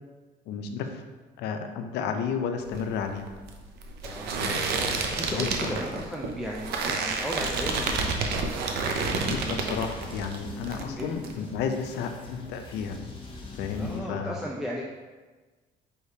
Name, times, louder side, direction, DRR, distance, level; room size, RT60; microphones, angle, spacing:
voice 1, 0.5-1.0 1.4-3.2 4.4-4.7 5.3-5.8 9.1-13.0 13.5-14.4, left 6 dB, 85° left, 6 dB, 0.5 m, -32 dB
sound 1, 2.6-10.4 10.6-11.3, right 4 dB, 75° right, 0.6 m, -30 dB
voice 2, 4.0-8.2 9.1-9.9 11.0-11.1 13.8-14.8, equal, 5° right, -2 dB, 0.3 m, -36 dB
sound 2, 8.9-14.0, left 3 dB, 30° left, 0.8 m, -42 dB
4.5 x 3.4 x 2.7 m, 1.3 s
cardioid pair, 110°, 17 cm